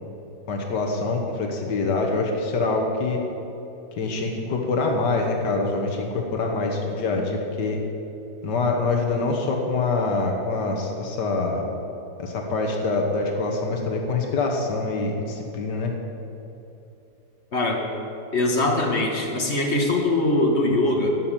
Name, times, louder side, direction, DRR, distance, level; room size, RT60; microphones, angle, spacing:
voice 1, 0.5-3.2 4.0-7.8 8.4-11.6 12.2-15.9, left 3 dB, 85° left, 1 dB, 1.8 m, -25 dB
voice 2, 17.5-17.8 18.3-21.1, left 2 dB, 40° left, 1 dB, 1.7 m, -22 dB
12.0 x 6.0 x 8.8 m, 2.9 s
omnidirectional pair, 1.8 m